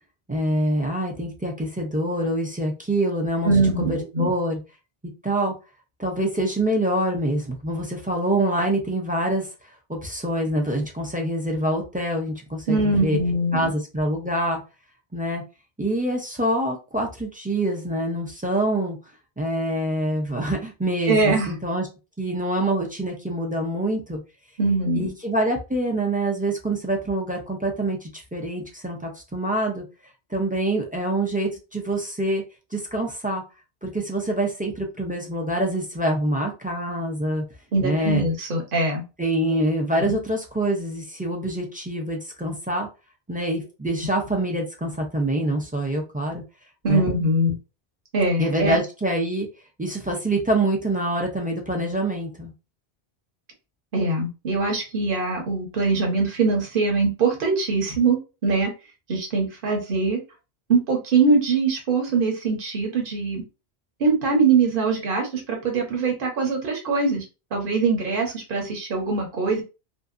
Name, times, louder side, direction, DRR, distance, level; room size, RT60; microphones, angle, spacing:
voice 1, 0.3-4.6 5.2-5.5 6.0-9.5 9.9-13.2 13.5-14.6 15.1-15.4 15.8-19.0 19.4-21.9 22.2-24.2 24.9-29.8 30.3-32.4 32.7-33.4 33.8-37.4 37.8-38.2 39.2-42.9 43.3-46.4 46.9-47.1 48.4-49.5 49.8-52.5, right 1 dB, 15° right, 0 dB, 0.3 m, -25 dB
voice 2, 3.4-4.3 12.7-13.7 21.1-21.5 24.6-25.1 37.7-39.0 40.0-40.2 46.8-47.6 48.1-48.8 53.9-58.2 58.4-58.7 59.1-60.2 60.7-63.4 64.0-67.2 67.5-69.6, right 3 dB, 55° right, 1 dB, 1.1 m, -22 dB
2.7 x 2.5 x 2.5 m, 0.30 s
omnidirectional pair, 1.1 m